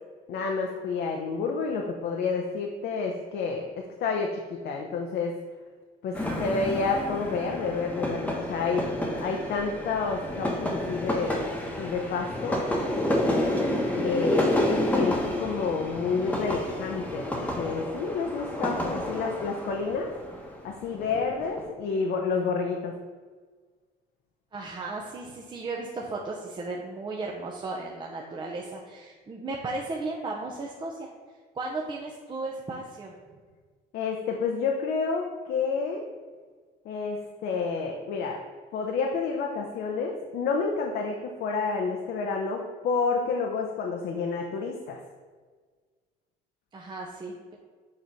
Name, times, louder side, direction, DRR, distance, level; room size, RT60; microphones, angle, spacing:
voice 1, 0.3-5.3 6.0-8.9 9.2-11.5 11.8-12.6 14.0-20.1 20.6-22.9 33.9-36.0 36.8-38.4 38.7-45.0, left 4 dB, 70° left, 1 dB, 0.7 m, -29 dB
sound 1, 6.1-21.7, left 1 dB, 10° left, 1.0 m, -30 dB
voice 2, 6.1-6.5 10.9-11.1 24.5-31.1 31.5-33.1 46.7-47.6, right 3 dB, 30° right, -2 dB, 0.7 m, -35 dB
6.6 x 3.1 x 5.3 m, 1.5 s
cardioid pair, 110°, 17 cm